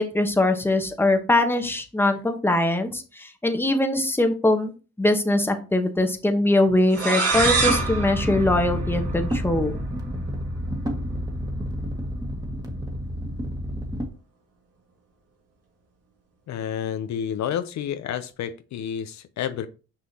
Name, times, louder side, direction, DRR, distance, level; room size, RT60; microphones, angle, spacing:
voice 1, 0.0-9.7, left 1 dB, 5° left, 5 dB, 1.1 m, -22 dB
sound 1, 6.9-9.5, right 4 dB, 50° right, 2.0 m, -26 dB
sound 2, 7.3-14.1, equal, 15° right, 1.7 m, -29 dB
voice 2, 16.5-19.7, left 9 dB, 65° left, 11 dB, 0.6 m, -30 dB
6.3 x 5.6 x 2.8 m, 0.34 s
cardioid pair, 90°, 30 cm